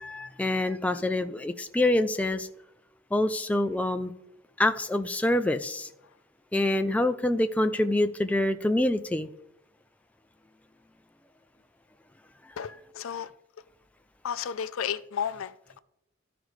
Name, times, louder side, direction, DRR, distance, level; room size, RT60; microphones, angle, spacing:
voice 1, 0.0-2.5 3.1-4.1 4.6-5.9 6.5-9.3, left 1 dB, 5° left, 0.3 m, -26 dB
voice 2, 12.6-13.3 14.2-15.8, left 8 dB, 80° left, 0.4 m, -33 dB
14.0 x 5.0 x 3.2 m
head